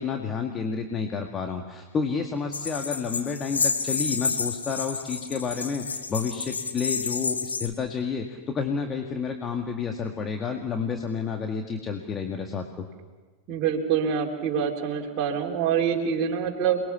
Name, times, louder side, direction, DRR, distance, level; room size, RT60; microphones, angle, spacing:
voice 1, 0.0-12.9, left 5 dB, 25° left, 3 dB, 2.0 m, -30 dB
sound 1, 2.5-7.7, left 5 dB, 75° left, 1.7 m, -30 dB
voice 2, 13.5-16.8, right 7 dB, 35° right, -1 dB, 3.6 m, -25 dB
29.0 x 21.0 x 7.1 m, 1.3 s
figure-of-eight pair, 90°, 0 cm